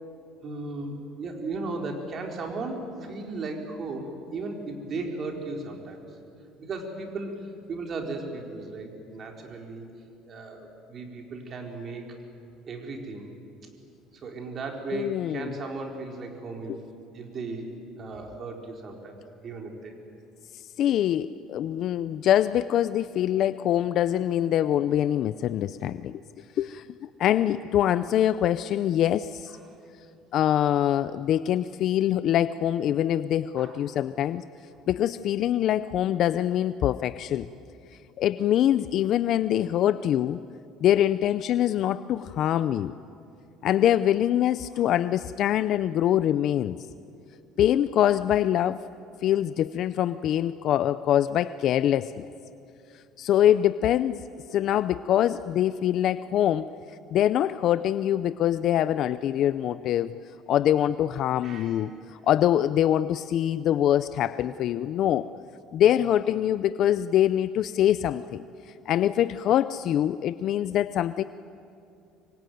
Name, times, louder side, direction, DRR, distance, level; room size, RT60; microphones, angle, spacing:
voice 1, 0.4-6.0 6.6-9.8 10.3-12.0 12.7-13.3 14.1-16.8 17.1-19.2 19.4-20.0 29.5-29.8 33.6-33.9 34.7-34.9 44.7-44.9 54.5-54.6 61.4-61.8, right 3 dB, 40° right, 2 dB, 4.2 m, -36 dB
voice 2, 14.9-15.5 16.7-16.8 20.5-26.2 26.6-29.6 30.3-34.4 34.9-37.5 38.2-40.4 40.8-42.9 43.6-46.8 47.6-48.8 49.2-52.3 53.2-54.2 54.5-56.7 57.1-60.1 60.5-65.2 65.7-71.2, left 11 dB, 50° left, 14 dB, 0.6 m, -24 dB
25.5 x 24.0 x 9.4 m, 2.5 s
cardioid pair, 135°, 0 cm